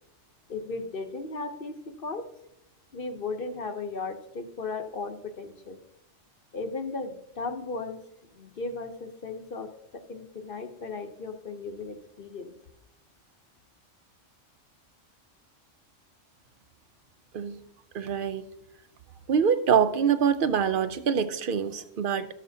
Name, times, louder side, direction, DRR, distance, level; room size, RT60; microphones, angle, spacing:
voice 1, 0.5-2.3 2.9-5.8 6.5-8.0 8.3-12.5, left 3 dB, 50° left, 6 dB, 1.0 m, -36 dB
voice 2, 17.9-18.5 19.3-22.3, right 7 dB, 55° right, 12 dB, 0.7 m, -25 dB
13.0 x 7.4 x 2.7 m, 0.85 s
omnidirectional pair, 1.3 m